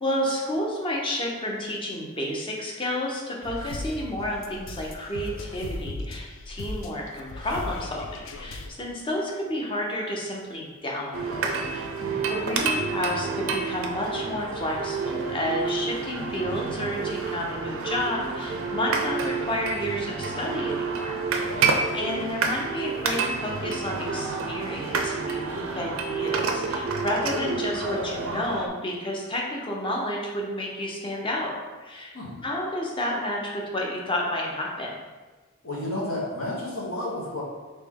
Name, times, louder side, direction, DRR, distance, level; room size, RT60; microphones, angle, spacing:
voice 1, 0.0-12.0 12.3-21.2 21.6-21.7 21.9-32.2 32.4-34.9, left 1 dB, 25° left, -1 dB, 0.6 m, -31 dB
sound 1, 3.4-8.7, left 2 dB, 65° left, 0.4 m, -37 dB
sound 2, 11.1-28.7, right 4 dB, 70° right, 0.4 m, -29 dB
voice 2, 21.4-21.8 32.1-32.4 35.6-37.4, left 1 dB, 85° left, -5 dB, 1.2 m, -32 dB
3.2 x 2.9 x 3.7 m, 1.3 s
head